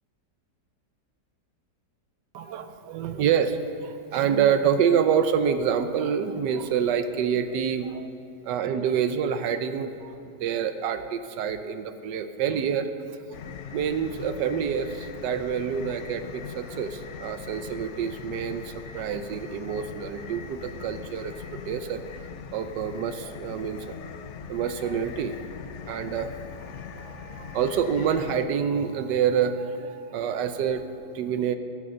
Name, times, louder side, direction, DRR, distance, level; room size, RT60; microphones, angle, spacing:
voice 1, 2.3-8.1 8.4-10.1 10.4-12.9 13.7-22.0 22.5-24.0 24.5-25.5 25.9-31.6, right 7 dB, 85° right, 10 dB, 1.3 m, -27 dB
sound 1, 13.3-28.5, left 7 dB, 65° left, 0.8 m, -41 dB
13.5 x 6.9 x 6.6 m, 3.0 s
omnidirectional pair, 1.8 m